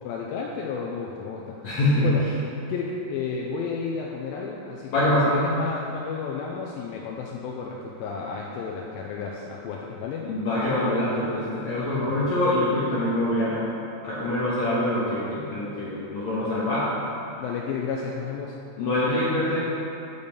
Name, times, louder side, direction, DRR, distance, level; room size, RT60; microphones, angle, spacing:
voice 1, 0.0-1.6 2.0-2.2 2.7-10.3 12.0-12.2 17.4-18.6, left 5 dB, 85° left, -2 dB, 2.4 m, -32 dB
voice 2, 1.6-2.1 4.9-5.3 10.2-13.6 14.0-16.9 18.8-19.6, left 1 dB, 60° left, -9 dB, 2.2 m, -24 dB
7.0 x 5.4 x 6.7 m, 2.8 s
omnidirectional pair, 4.1 m